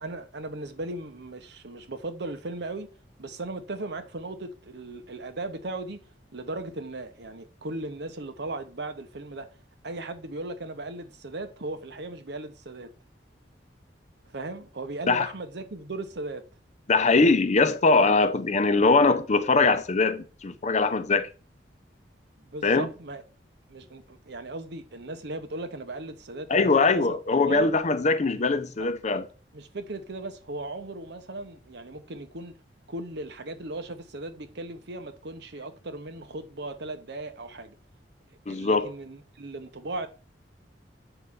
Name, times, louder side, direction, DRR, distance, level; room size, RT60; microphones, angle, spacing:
voice 1, 0.0-2.9 3.2-6.0 6.3-9.5 9.8-12.9 14.3-16.5 22.4-23.2 23.7-27.7 29.5-32.6 32.9-37.7 38.5-40.1, right 2 dB, 70° right, 0.9 m, -37 dB
voice 2, 16.9-21.3 22.6-22.9 26.5-29.2 38.5-38.9, left 3 dB, 40° left, 0.6 m, -22 dB
7.9 x 5.5 x 3.6 m
head